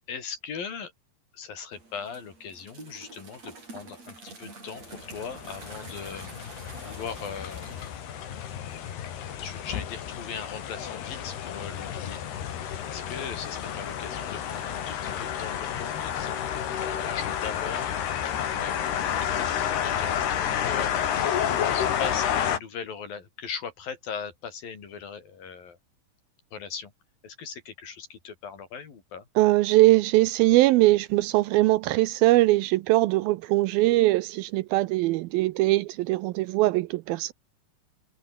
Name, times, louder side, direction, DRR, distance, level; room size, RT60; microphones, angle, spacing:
voice 1, 0.1-0.9 1.3-6.3 6.8-7.7 9.4-12.2 12.8-16.4 16.8-17.9 18.5-20.9 21.7-25.8 26.5-26.9 27.2-29.3, left 6 dB, 65° left, 5.6 m, -39 dB
sound 1, 1.7-8.8, right 3 dB, 40° right, 9.2 m, -47 dB
sound 2, 5.0-22.6, left 9 dB, 90° left, 4.7 m, -30 dB
voice 2, 29.4-37.3, right 18 dB, 80° right, 2.3 m, -21 dB
omnidirectional pair, 4.5 m